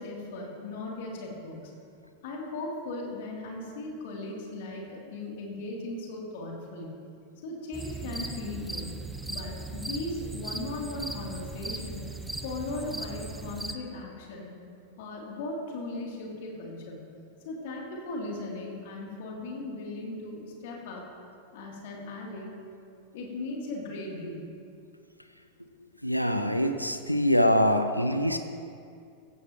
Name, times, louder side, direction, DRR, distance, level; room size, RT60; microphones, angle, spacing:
voice 1, 0.0-1.7 2.2-7.0 7.4-9.0 9.3-12.0 12.4-14.5 15.0-17.1 17.4-21.0 21.5-22.5 23.1-24.5, left 2 dB, 50° left, -2 dB, 3.2 m, -37 dB
sound 1, 7.7-13.8, right 2 dB, 5° right, 0.8 m, -38 dB
voice 2, 26.0-28.4, equal, 90° left, 7 dB, 0.7 m, -24 dB
15.5 x 15.5 x 3.1 m, 2.4 s
figure-of-eight pair, 90°, 0 cm